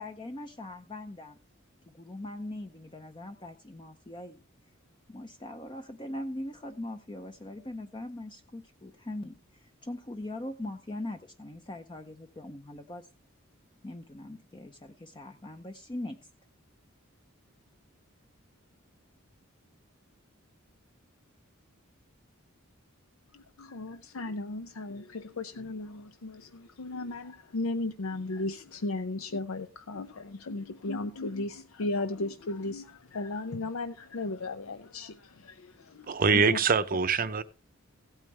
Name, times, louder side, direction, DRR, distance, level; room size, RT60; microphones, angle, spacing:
voice 1, 0.0-1.4 1.9-4.4 5.1-13.1 13.8-16.2, left 1 dB, 25° left, 0.6 m, -41 dB
voice 2, 23.3-36.6, left 2 dB, 85° left, 0.6 m, -36 dB
voice 3, 36.1-37.4, right 5 dB, 45° right, 0.7 m, -24 dB
16.0 x 8.9 x 3.3 m
head